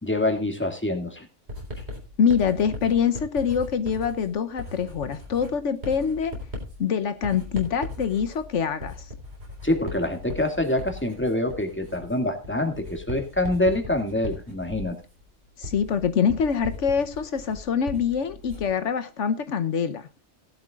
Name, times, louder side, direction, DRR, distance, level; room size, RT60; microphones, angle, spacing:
voice 1, 0.0-1.3 9.6-15.0, left 1 dB, 10° left, 2.2 m, -25 dB
Writing, 1.5-18.8, left 2 dB, 65° right, 4.4 m, -38 dB
voice 2, 2.2-6.3 6.8-9.0 15.6-20.1, left 7 dB, 80° left, 1.2 m, -25 dB
17.5 x 11.5 x 2.4 m
omnidirectional pair, 1.2 m